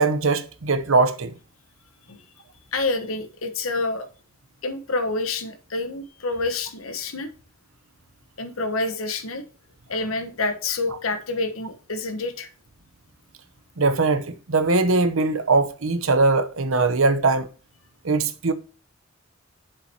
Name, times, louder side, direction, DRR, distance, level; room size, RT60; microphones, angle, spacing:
voice 1, 0.0-1.3 13.8-17.5 18.0-18.5, right 3 dB, 75° right, 0.9 m, -21 dB
voice 2, 2.7-4.1 4.6-7.3 8.4-9.4 9.9-12.5, left 3 dB, 85° left, 1.2 m, -28 dB
7.4 x 6.8 x 2.8 m
head